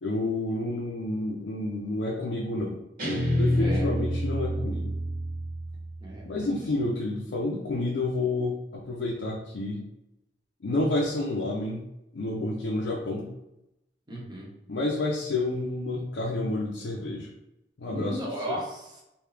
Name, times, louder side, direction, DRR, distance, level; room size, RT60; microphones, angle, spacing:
voice 1, 0.0-2.8 3.3-4.9 6.2-9.8 10.6-11.8 12.1-13.3 14.7-17.3 17.8-18.6, left 2 dB, 80° left, -3 dB, 0.5 m, -29 dB
Guitar, 3.0-6.2, equal, 55° right, 1.3 m, -28 dB
voice 2, 3.6-3.9 6.0-6.6 14.1-14.5 17.9-19.0, right 1 dB, 25° right, -3 dB, 0.9 m, -35 dB
3.3 x 2.7 x 3.3 m, 0.90 s
head